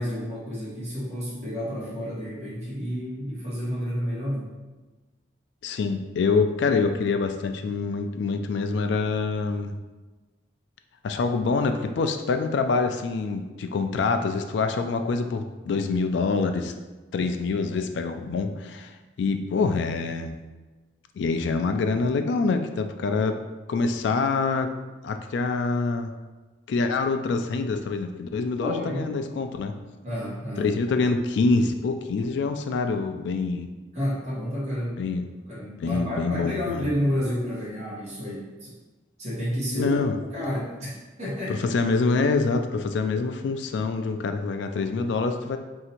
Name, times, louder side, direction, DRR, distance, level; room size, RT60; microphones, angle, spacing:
voice 1, 0.0-4.5 17.2-17.3 28.6-29.1 30.0-30.9 33.9-35.0 35.5-38.7 39.2-41.6, equal, 35° right, -8 dB, 1.2 m, -30 dB
voice 2, 5.6-9.8 11.0-16.7 17.1-20.3 21.2-23.4 23.7-24.7 25.0-26.1 26.7-29.8 30.6-33.7 35.0-35.2 35.8-36.9 39.7-40.2 41.5-45.6, left 4 dB, 65° left, 7 dB, 0.3 m, -25 dB
2.8 x 2.5 x 4.2 m, 1.2 s
head